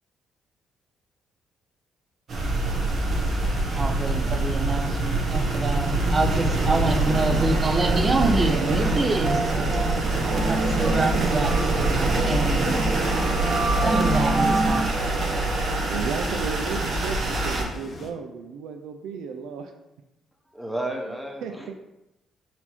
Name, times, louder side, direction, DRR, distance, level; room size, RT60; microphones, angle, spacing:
sound 1, 2.3-17.6, right 2 dB, 55° right, 0.9 m, -24 dB
sound 2, 2.8-18.1, left 3 dB, 50° left, 0.7 m, -41 dB
voice 1, 3.5-14.9, right 2 dB, 30° right, 4 dB, 0.6 m, -26 dB
voice 2, 15.9-19.7 21.4-21.7, right 6 dB, 85° right, 5 dB, 0.4 m, -34 dB
voice 3, 20.5-21.7, right 1 dB, 5° right, 1 dB, 0.9 m, -32 dB
4.2 x 2.7 x 4.3 m, 0.92 s
cardioid pair, 90°, 0 cm